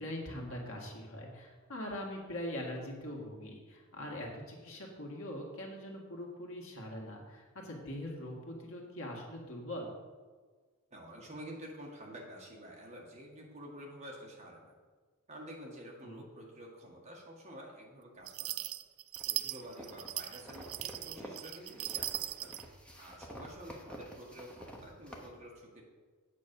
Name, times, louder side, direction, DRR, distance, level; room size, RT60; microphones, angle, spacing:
voice 1, 0.0-9.9 16.0-16.2, left 1 dB, 65° left, -1 dB, 2.0 m, -42 dB
voice 2, 10.9-14.8 15.3-18.7 19.3-22.5 23.0-25.8, equal, 30° right, -2 dB, 1.8 m, -49 dB
sound 1, 18.3-22.7, right 15 dB, 70° right, 0.4 m, -39 dB
sound 2, 19.1-25.3, equal, 5° left, 1.0 m, -50 dB
8.6 x 5.3 x 7.0 m, 1.5 s
head